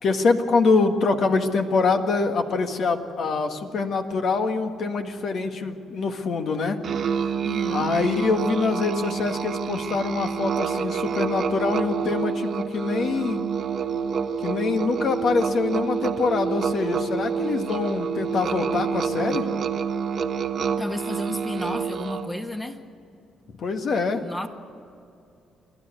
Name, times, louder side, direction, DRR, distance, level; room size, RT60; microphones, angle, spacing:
voice 1, 0.0-6.8 7.2-7.3 7.7-13.4 14.4-19.5 23.6-24.2, left 4 dB, 60° left, 6 dB, 1.7 m, -24 dB
Musical instrument, 6.8-22.4, right 6 dB, 60° right, 1.3 m, -28 dB
voice 2, 7.4-7.9 20.8-22.8 24.2-24.5, left 1 dB, 15° left, 4 dB, 1.5 m, -32 dB
29.0 x 12.0 x 8.2 m, 2.5 s
cardioid pair, 90°, 0 cm